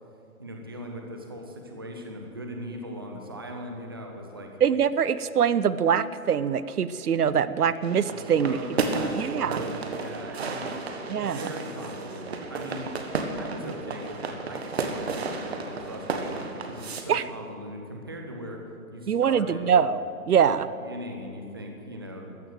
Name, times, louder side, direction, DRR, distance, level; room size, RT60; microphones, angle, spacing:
voice 1, 0.4-4.5 7.6-7.7 8.1-10.8 11.1-12.9 13.3-18.6 18.9-19.7 20.4-20.5 20.8-22.4, equal, 15° right, 2 dB, 0.6 m, -39 dB
voice 2, 4.6-8.6 8.9-9.6 11.1-11.5 17.1-17.2 19.1-20.7, right 7 dB, 75° right, 15 dB, 0.8 m, -24 dB
sound 1, 7.8-17.0, right 4 dB, 45° right, 1.5 m, -33 dB
14.0 x 11.5 x 7.9 m, 2.6 s
hypercardioid pair, 165°, 46 cm